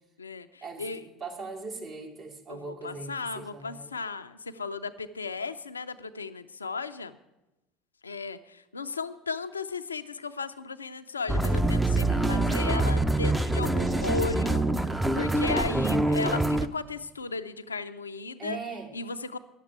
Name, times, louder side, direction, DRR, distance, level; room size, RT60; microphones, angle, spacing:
voice 1, 0.2-1.1 2.5-7.2 8.0-14.6 15.1-18.6 18.9-19.4, left 4 dB, 90° left, 11 dB, 0.4 m, -35 dB
voice 2, 1.2-3.9 15.6-16.1 18.4-18.9, right 4 dB, 45° right, 0 dB, 2.5 m, -38 dB
sound 1, 11.3-16.7, right 2 dB, 5° right, 0.6 m, -25 dB
10.0 x 7.4 x 8.6 m, 0.98 s
hypercardioid pair, 70°, 0 cm